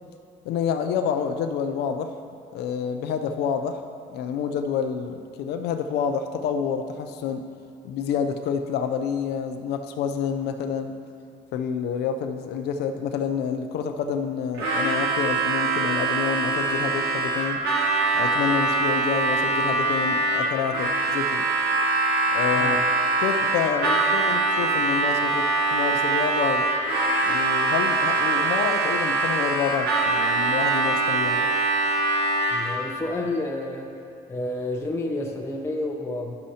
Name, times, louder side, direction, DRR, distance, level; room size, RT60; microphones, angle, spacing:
voice 1, 0.4-2.1 2.5-3.8 4.1-7.4 7.8-10.9 11.5-17.6 18.1-21.5 22.3-22.8 23.2-26.7 27.3-31.5, left 7 dB, 75° left, 6 dB, 0.5 m, -28 dB
Harmonica, 14.6-32.8, right 3 dB, 85° right, 1.3 m, -23 dB
voice 2, 22.5-22.9 32.5-33.9 34.3-36.3, left 2 dB, 15° left, 0 dB, 0.6 m, -30 dB
11.5 x 6.3 x 2.8 m, 2.6 s
cardioid pair, 110°, 17 cm